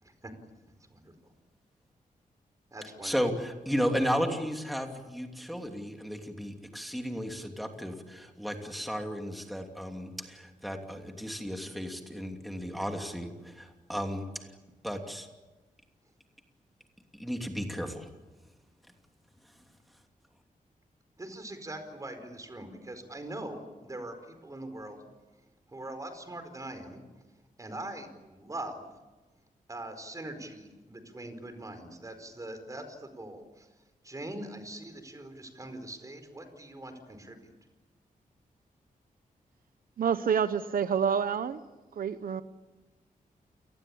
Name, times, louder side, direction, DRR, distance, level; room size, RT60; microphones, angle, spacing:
voice 1, 0.9-1.3 2.7-3.2 21.2-25.0 25.7-27.0 27.6-28.9 29.7-33.7 34.0-37.5, right 1 dB, 20° right, 8 dB, 4.7 m, -42 dB
voice 2, 3.0-14.5 14.8-15.3 17.1-18.1, equal, ahead, 3 dB, 2.9 m, -34 dB
voice 3, 40.0-41.6 42.0-42.4, right 7 dB, 80° right, 11 dB, 1.0 m, -28 dB
29.0 x 20.0 x 8.7 m, 1.2 s
wide cardioid pair, 135°, 15 cm